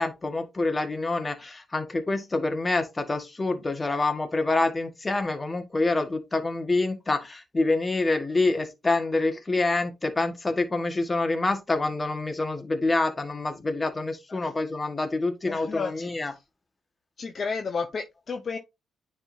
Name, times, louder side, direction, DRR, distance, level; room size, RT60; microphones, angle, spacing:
voice 1, 0.0-16.3, left 2 dB, 30° left, 1.5 m, -26 dB
voice 2, 15.4-16.4 17.2-18.6, left 5 dB, 50° left, 0.7 m, -32 dB
9.8 x 3.7 x 2.7 m
hypercardioid pair, 45°, 0 cm